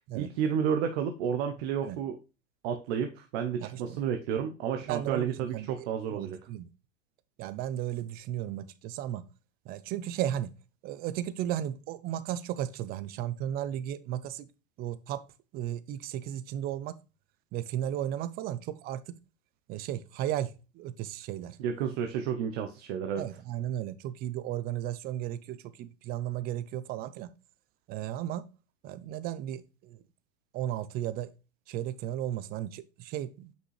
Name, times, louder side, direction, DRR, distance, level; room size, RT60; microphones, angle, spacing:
voice 1, 0.1-2.2 2.6-6.4 21.6-23.2, right 8 dB, 50° right, 6 dB, 0.8 m, -31 dB
voice 2, 3.6-4.0 4.8-5.7 6.1-6.7 7.4-9.2 9.7-10.5 10.8-14.5 14.8-15.2 15.5-16.9 17.5-19.0 19.7-21.6 23.2-27.3 27.9-28.4 28.8-30.0 30.5-31.3 31.7-33.5, right 12 dB, 25° right, 14 dB, 0.4 m, -35 dB
6.1 x 5.4 x 3.1 m, 0.30 s
hypercardioid pair, 120°, 39 cm